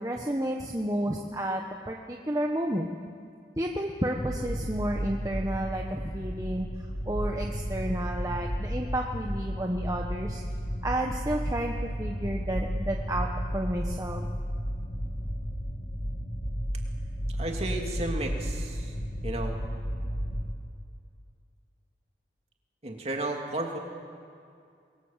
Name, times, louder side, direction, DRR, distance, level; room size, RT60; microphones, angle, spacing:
voice 1, 0.0-2.9 3.6-6.7 7.1-10.4 10.8-14.3, right 1 dB, 20° right, 1 dB, 1.2 m, -31 dB
sound 1, 4.2-20.5, equal, 55° left, 2.2 m, -33 dB
voice 2, 17.4-18.9 19.2-19.6 22.8-23.8, right 2 dB, 35° right, 1 dB, 2.8 m, -33 dB
26.0 x 22.0 x 7.4 m, 2.4 s
head